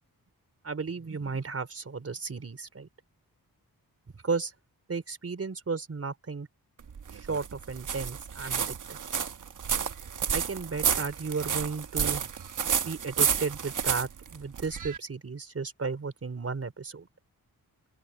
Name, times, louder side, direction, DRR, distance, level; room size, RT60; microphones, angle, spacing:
voice 1, 0.6-2.9 4.2-4.5 4.9-6.5 7.1-9.0 10.3-12.3 12.9-17.1, right 4 dB, 40° right, 3.7 m, -34 dB
sound 1, 6.8-15.0, right 7 dB, 55° right, 1.1 m, -30 dB
open air
wide cardioid pair, 160°, 37 cm